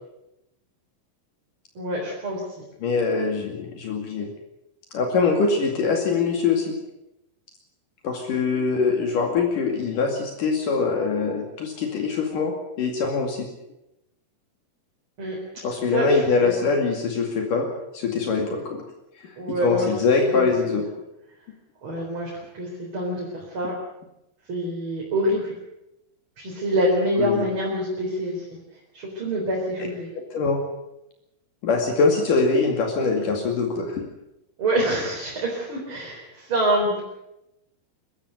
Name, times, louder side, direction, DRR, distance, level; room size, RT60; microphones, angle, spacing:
voice 1, 1.7-2.6 15.2-15.4 15.9-16.5 19.4-19.9 20.3-20.8 21.8-23.7 24.5-25.5 26.4-28.4 28.9-30.1 34.6-37.0, right 1 dB, 35° right, -3 dB, 4.9 m, -26 dB
voice 2, 2.8-4.3 4.9-6.8 8.0-13.5 15.6-17.7 17.9-18.8 19.2-19.3 19.6-20.8 27.2-27.4 30.3-30.6 31.6-34.0, left 4 dB, 70° left, 2 dB, 3.9 m, -23 dB
24.0 x 13.5 x 9.4 m, 0.88 s
omnidirectional pair, 4.0 m